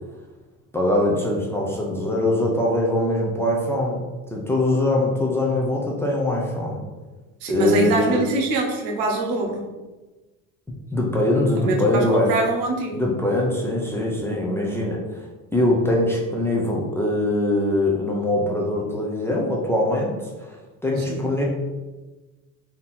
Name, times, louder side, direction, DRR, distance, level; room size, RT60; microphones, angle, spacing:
voice 1, 0.7-4.0 4.3-6.8 7.5-8.2 10.9-12.3 12.9-15.2 15.5-20.6 20.8-21.4, left 1 dB, 5° left, -3 dB, 0.4 m, -22 dB
voice 2, 7.4-9.7 11.6-13.0 21.0-21.2, right 2 dB, 80° right, 1 dB, 1.0 m, -24 dB
3.7 x 2.8 x 4.0 m, 1.2 s
cardioid pair, 155°, 33 cm